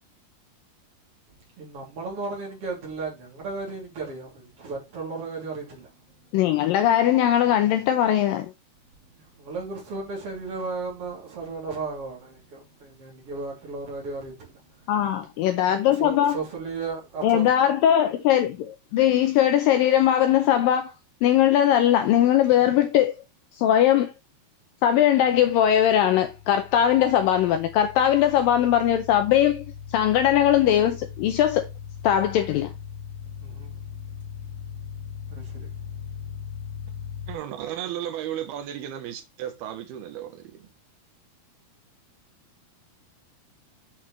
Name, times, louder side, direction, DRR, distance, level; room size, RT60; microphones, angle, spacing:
voice 1, 1.6-6.4 9.2-14.6 15.9-17.5 17.7-18.2 33.2-34.2 35.3-36.4, right 4 dB, 40° right, 3.6 m, -35 dB
voice 2, 6.3-8.5 14.9-16.3 17.2-20.9 21.2-23.1 23.6-24.1 24.8-29.6 29.9-31.6 32.0-32.7, left 11 dB, 80° left, 2.1 m, -20 dB
sound 1, 25.2-37.4, left 8 dB, 60° left, 2.4 m, -39 dB
voice 3, 37.3-40.7, right 11 dB, 75° right, 2.9 m, -34 dB
8.3 x 5.9 x 3.2 m
omnidirectional pair, 4.6 m